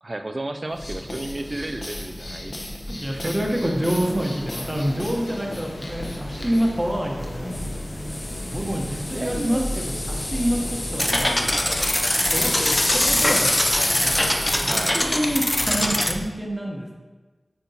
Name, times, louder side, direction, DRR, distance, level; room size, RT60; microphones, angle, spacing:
voice 1, 0.0-2.8 3.2-3.5 9.1-9.8 14.6-15.0, right 2 dB, 35° right, 7 dB, 0.4 m, -33 dB
sound 1, 0.7-16.3, left 1 dB, 50° left, 1.0 m, -30 dB
voice 2, 2.9-7.5 8.5-11.4 12.3-13.7 14.0-14.1 14.6-17.0, equal, 15° right, 0 dB, 1.0 m, -27 dB
sound 2, 3.8-14.6, left 1 dB, 85° left, 0.9 m, -40 dB
sound 3, 11.0-16.1, left 1 dB, 15° left, 0.5 m, -23 dB
9.1 x 4.3 x 2.9 m, 1.3 s
wide cardioid pair, 85°, 0 cm